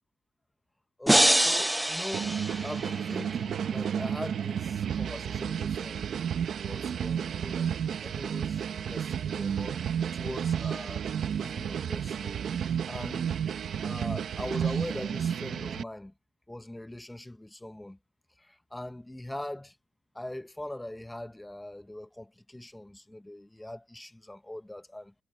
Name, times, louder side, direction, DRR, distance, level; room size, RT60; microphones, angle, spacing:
voice 1, 1.0-2.4 2.6-6.1 6.6-9.8 10.1-12.4 12.9-13.3 13.8-16.1 16.5-18.0 18.4-19.7 20.1-25.1, left 1 dB, 10° left, 1.4 m, -41 dB
sound 1, 1.1-3.2, right 1 dB, 10° right, 0.3 m, -25 dB
sound 2, 2.1-15.8, right 8 dB, 75° right, 1.3 m, -32 dB
cardioid pair, 70°, 0 cm